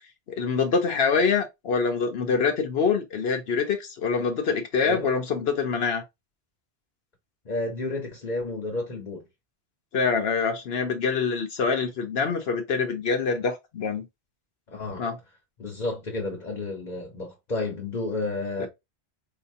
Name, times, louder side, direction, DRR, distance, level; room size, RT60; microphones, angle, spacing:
voice 1, 0.4-6.0 9.9-14.1 15.0-15.1 18.6-18.7, left 5 dB, 75° left, 1.0 m, -25 dB
voice 2, 7.4-9.2 14.7-15.0 15.6-18.7, left 2 dB, 45° left, 1.3 m, -31 dB
4.6 x 2.8 x 2.7 m
omnidirectional pair, 1.0 m